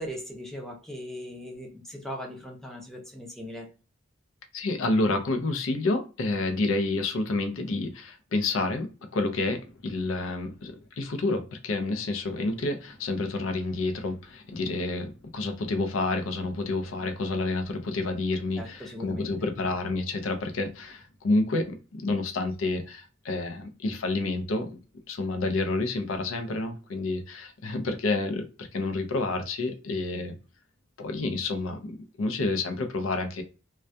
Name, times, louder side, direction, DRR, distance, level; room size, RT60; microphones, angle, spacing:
voice 1, 0.0-3.7 18.6-19.3, equal, ahead, 0 dB, 0.5 m, -39 dB
voice 2, 4.5-24.8 25.1-30.4 31.0-33.4, left 2 dB, 80° left, 6 dB, 0.5 m, -29 dB
2.2 x 2.2 x 2.6 m, 0.33 s
head